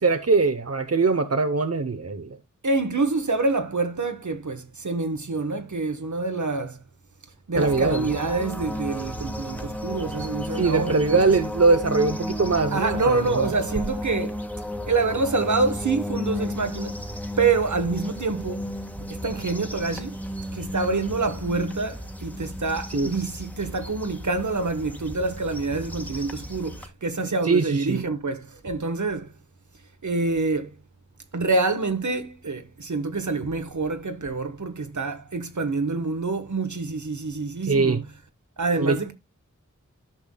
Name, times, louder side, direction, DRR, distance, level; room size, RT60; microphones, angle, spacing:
voice 1, 0.0-2.4 7.6-8.1 10.6-13.5 22.9-23.1 27.4-28.0 37.7-38.0 38.8-39.1, right 4 dB, 50° right, 0.9 m, -22 dB
voice 2, 2.6-6.8 7.5-11.3 12.7-14.4 14.9-17.0 17.4-18.7 19.1-20.1 20.5-29.3 30.0-30.7 31.3-38.1 38.6-39.1, right 3 dB, 70° right, 1.3 m, -26 dB
sound 1, 7.5-26.9, equal, 5° left, 1.5 m, -34 dB
13.5 x 5.9 x 2.2 m
wide cardioid pair, 50°, 31 cm